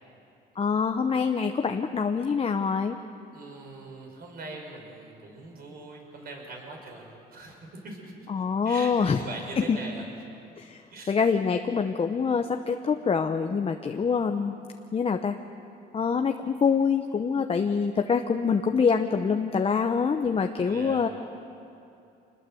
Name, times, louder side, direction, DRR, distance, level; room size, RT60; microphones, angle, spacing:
voice 1, 0.6-3.0 8.3-9.2 9.6-9.8 10.6-14.5 14.9-15.4 15.9-21.1, left 5 dB, 30° left, 5 dB, 0.9 m, -25 dB
voice 2, 3.3-10.1 10.9-11.2 20.6-21.1, right 2 dB, 55° right, 1 dB, 5.8 m, -42 dB
25.5 x 20.5 x 7.8 m, 2.6 s
cardioid pair, 105°, 19 cm